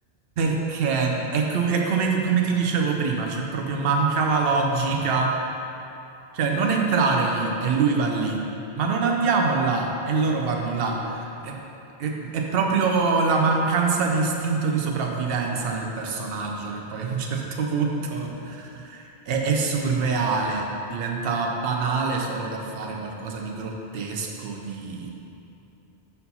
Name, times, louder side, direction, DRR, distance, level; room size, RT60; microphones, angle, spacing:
voice 1, 0.4-5.7 6.3-8.4 8.7-11.5 12.0-25.1, right 4 dB, 70° right, 1 dB, 0.9 m, -24 dB
5.5 x 4.4 x 5.4 m, 2.8 s
omnidirectional pair, 1.0 m